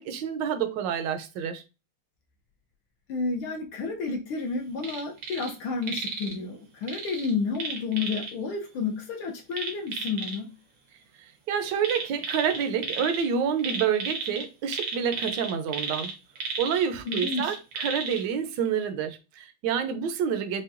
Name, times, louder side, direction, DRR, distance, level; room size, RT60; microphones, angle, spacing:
voice 1, 0.0-1.6 11.5-16.1 16.6-20.6, right 7 dB, 70° right, 1.1 m, -28 dB
voice 2, 3.1-10.5 17.0-17.6, left 4 dB, 80° left, 1.7 m, -31 dB
sound 1, 4.8-5.5 5.8-6.3 6.9-8.3 9.5-10.4 11.8-13.3 13.6-18.2 18.7-18.8, right 4 dB, 85° right, 1.9 m, -33 dB
5.6 x 2.3 x 2.5 m
omnidirectional pair, 2.4 m